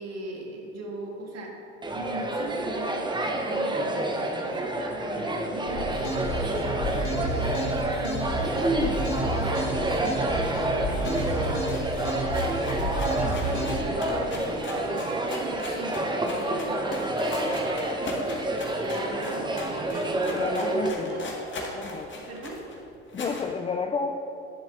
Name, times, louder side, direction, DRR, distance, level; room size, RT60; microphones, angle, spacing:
voice 1, 0.0-21.3 22.1-22.6, right 1 dB, 45° right, 0 dB, 1.7 m, -39 dB
sound 1, 1.8-20.9, right 1 dB, 15° right, 0.8 m, -28 dB
sound 2, 5.7-13.8, right 1 dB, 75° left, 1.6 m, -31 dB
sound 3, 7.6-10.2 10.5-10.6 10.8-23.5, left 2 dB, 35° left, 1.8 m, -39 dB
voice 2, 20.3-21.3 21.8-22.1 23.1-24.1, left 4 dB, 20° left, 4 dB, 0.3 m, -31 dB
11.0 x 7.3 x 2.6 m, 2.9 s
hypercardioid pair, 65°, 35 cm